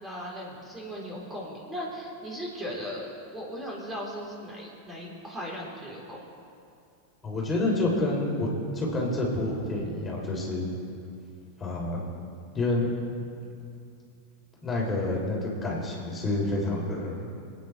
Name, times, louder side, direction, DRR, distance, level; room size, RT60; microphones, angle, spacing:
voice 1, 0.0-6.3, equal, 15° right, -4 dB, 3.6 m, -37 dB
voice 2, 7.2-8.5 8.7-10.7 11.6-12.0 12.5-12.9 14.6-17.3, left 2 dB, 25° left, -3 dB, 3.4 m, -28 dB
26.0 x 9.5 x 3.3 m, 2.5 s
figure-of-eight pair, 90°, 0 cm